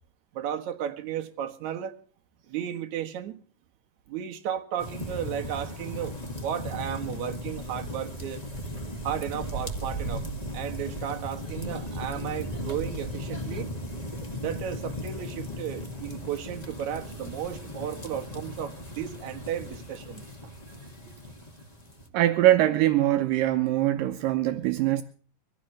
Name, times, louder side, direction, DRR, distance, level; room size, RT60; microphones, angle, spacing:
voice 1, 0.3-2.0 2.5-3.4 4.1-8.4 9.0-10.3 10.5-13.7 14.4-20.3, right 10 dB, 60° right, 2.6 m, -34 dB
sound 1, 4.8-22.1, equal, 15° left, 1.3 m, -37 dB
voice 2, 22.1-25.0, right 14 dB, 80° right, 2.4 m, -22 dB
23.0 x 16.5 x 3.2 m
omnidirectional pair, 4.0 m